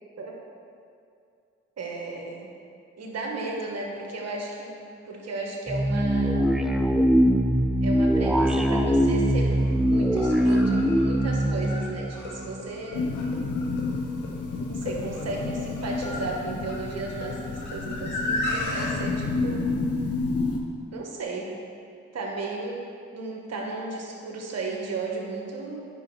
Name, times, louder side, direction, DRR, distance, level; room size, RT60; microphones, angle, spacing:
voice 1, 1.8-2.5 3.0-6.5 7.8-13.0 14.6-19.7 20.9-21.5 22.1-25.9, right 3 dB, 55° right, 0 dB, 1.6 m, -35 dB
sound 1, 5.7-12.9, equal, ahead, 0.7 m, -22 dB
sound 2, 8.9-9.0 10.0-18.9, left 2 dB, 75° left, 1.3 m, -35 dB
sound 3, 12.9-20.6, left 3 dB, 50° left, 1.0 m, -30 dB
9.2 x 5.5 x 4.4 m, 2.4 s
hypercardioid pair, 40°, 30 cm